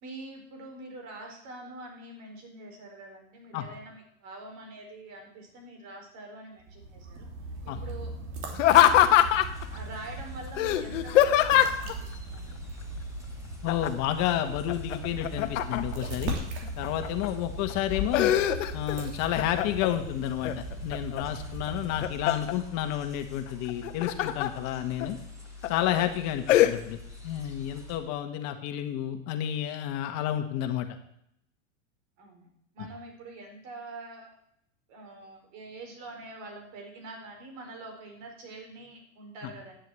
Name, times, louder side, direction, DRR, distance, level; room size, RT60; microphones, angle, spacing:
voice 1, 0.0-7.3 7.6-8.1 8.6-9.3 9.7-12.6 32.2-34.3 34.9-39.8, right 2 dB, 45° right, 2 dB, 4.3 m, -45 dB
sound 1, 6.6-22.5, right 2 dB, 60° right, 3.3 m, -39 dB
Laughter, 8.5-9.6 10.6-11.9 13.7-14.1 14.5-16.1 16.6-17.3 17.7-19.0 19.3-19.9 20.4-21.2 21.7-22.5 23.7-24.5 25.0-25.1 25.6-25.9 26.5-26.7, left 12 dB, 70° left, 1.2 m, -22 dB
sound 2, 9.0-28.0, left 3 dB, 10° right, 2.6 m, -46 dB
voice 2, 13.6-16.3 16.8-18.3 18.7-25.2 25.7-27.0 27.2-30.9, left 11 dB, 45° left, 7 dB, 1.7 m, -30 dB
9.7 x 7.5 x 7.8 m, 0.73 s
supercardioid pair, 130°, 39 cm